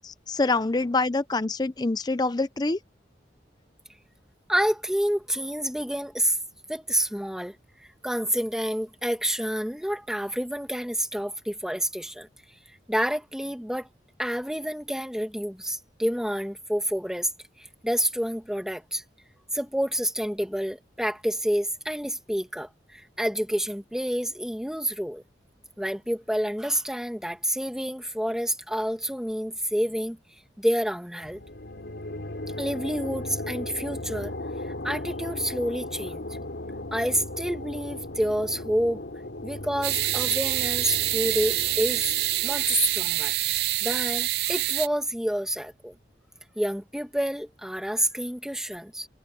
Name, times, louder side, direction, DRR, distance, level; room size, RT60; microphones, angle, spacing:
voice 1, 0.0-2.8, left 3 dB, 25° left, 0.5 m, -26 dB
voice 2, 4.5-6.4 6.7-12.3 12.9-13.9 14.2-17.3 17.6-19.0 19.5-25.2 25.8-30.2 30.6-31.4 32.6-34.3 34.6-36.2 36.9-39.0 39.4-42.0 42.4-43.3 43.8-45.9 46.6-49.1, equal, 5° right, 1.9 m, -28 dB
sound 1, 31.2-44.6, left 1 dB, 80° left, 2.9 m, -37 dB
sound 2, 39.8-44.9, right 15 dB, 65° right, 0.5 m, -26 dB
head